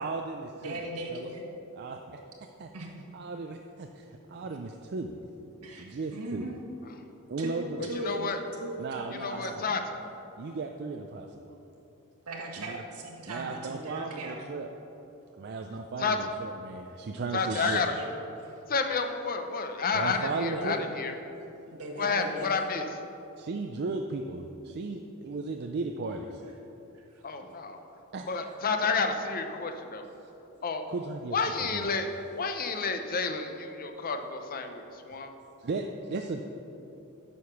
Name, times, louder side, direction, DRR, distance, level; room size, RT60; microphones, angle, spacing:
voice 1, 0.0-0.8 1.1-1.3 1.8-2.2 2.6-2.7 3.1-5.1 5.8-6.5 7.3-7.9 8.8-9.6 10.4-11.5 12.6-12.8 13.3-14.7 15.4-17.8 19.9-20.9 23.4-26.4 28.1-28.2 30.2-30.3 30.9-31.9 34.8-34.9 35.6-36.4, right 3 dB, 50° right, 4 dB, 0.4 m, -36 dB
voice 2, 0.6-1.4 2.7-2.9 5.6-6.6 7.4-9.7 12.3-14.4 17.5-18.1 18.4-18.6 19.9-20.7 21.7-22.7 27.1-27.3, right 1 dB, 80° right, 0 dB, 1.6 m, -39 dB
voice 3, 8.0-8.4 9.2-10.0 16.0-16.2 17.3-17.9 18.7-21.1 22.0-22.9 27.2-27.8 28.3-30.0 30.6-30.9 31.3-32.1 32.3-35.3, left 4 dB, 40° left, 6 dB, 0.7 m, -30 dB
9.3 x 6.7 x 5.8 m, 3.0 s
head